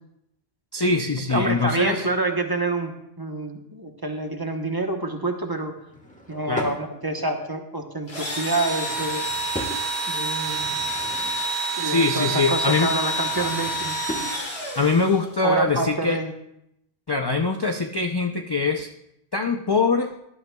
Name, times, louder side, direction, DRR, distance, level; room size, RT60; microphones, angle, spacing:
voice 1, 0.7-2.1 6.5-6.8 11.8-12.9 14.8-16.2 17.1-18.9 19.3-20.1, left 3 dB, 35° left, 4 dB, 0.4 m, -23 dB
voice 2, 1.3-5.7 6.3-9.2 10.1-10.8 11.7-14.0 15.4-16.3, right 2 dB, 20° right, 4 dB, 1.0 m, -27 dB
Drawer open or close / Wood, 5.8-6.8 8.5-9.8 10.4-11.5 12.8-14.4, equal, 5° left, 1.4 m, -37 dB
Engine / Drill, 8.1-15.4, right 2 dB, 70° left, 3.0 m, -28 dB
18.5 x 11.5 x 2.3 m, 0.80 s
omnidirectional pair, 1.1 m